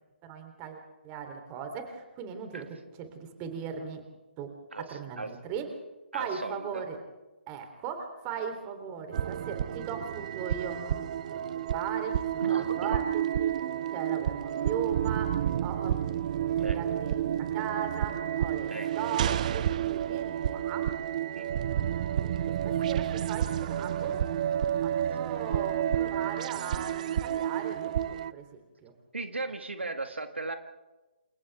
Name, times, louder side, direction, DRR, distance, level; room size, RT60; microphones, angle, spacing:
voice 1, 0.2-0.8 1.0-2.7 3.0-4.0 4.4-5.7 6.1-7.0 7.5-11.4 11.7-13.5 13.9-16.0 16.3-20.9 22.5-24.2 24.8-28.9, right 7 dB, 25° right, 6 dB, 3.6 m, -38 dB
voice 2, 6.1-6.8 8.3-8.4 12.4-13.0 16.6-16.8 18.7-18.9 21.3-21.5 29.1-30.5, right 3 dB, 80° right, 7 dB, 1.8 m, -36 dB
sound 1, 9.1-28.3, right 10 dB, 40° right, 0.7 m, -30 dB
29.0 x 28.5 x 3.6 m, 1.1 s
figure-of-eight pair, 140°, 6 cm